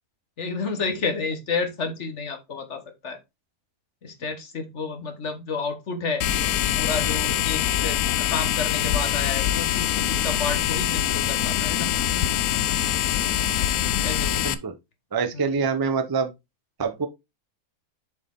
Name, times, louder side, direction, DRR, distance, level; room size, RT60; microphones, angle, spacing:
voice 1, 0.4-3.2 4.0-6.2 6.7-11.9 14.0-14.5 15.3-15.6, left 4 dB, 50° left, 1.4 m, -31 dB
sound 1, 6.2-14.5, left 11 dB, 70° left, 1.0 m, -24 dB
voice 2, 14.4-14.7 15.1-16.3 16.8-17.1, right 5 dB, 30° right, 0.4 m, -25 dB
7.1 x 4.2 x 3.7 m
omnidirectional pair, 1.7 m